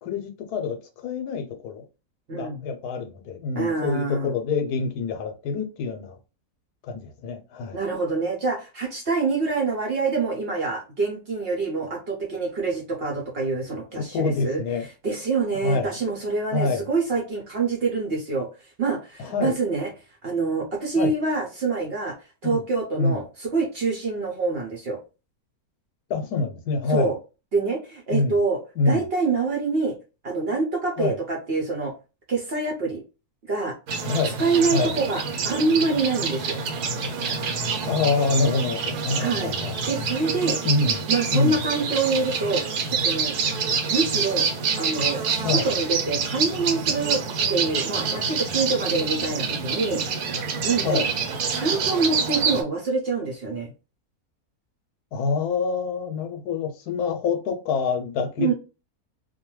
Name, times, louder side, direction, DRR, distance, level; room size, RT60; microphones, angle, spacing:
voice 1, 0.0-1.9 2.3-6.2 6.8-7.8 14.0-14.9 15.5-15.9 16.5-16.9 19.2-19.6 21.0-21.1 22.4-22.6 23.0-23.2 26.1-27.1 28.1-28.4 28.8-29.0 31.0-31.2 34.0-34.4 34.7-34.9 37.9-39.7 40.6-41.0 41.3-41.6 45.4-45.7 50.8-51.1 55.1-58.5, left 4 dB, 85° left, 1.1 m, -26 dB
voice 2, 2.3-2.6 3.6-4.3 7.7-18.5 18.8-19.9 20.2-22.2 22.4-25.0 26.9-27.2 27.5-28.6 28.9-30.0 30.2-31.9 32.3-33.0 33.5-33.7 34.4-36.6 39.2-39.5 39.9-40.6 41.1-42.6 42.9-43.3 43.9-44.5 44.8-45.2 45.5-47.2 47.5-50.0 50.5-51.1 51.5-53.7 58.4-58.5, right 4 dB, 55° right, 0.7 m, -26 dB
sound 1, 33.9-52.6, right 5 dB, 90° right, 1.2 m, -27 dB
2.6 x 2.2 x 3.0 m
omnidirectional pair, 1.6 m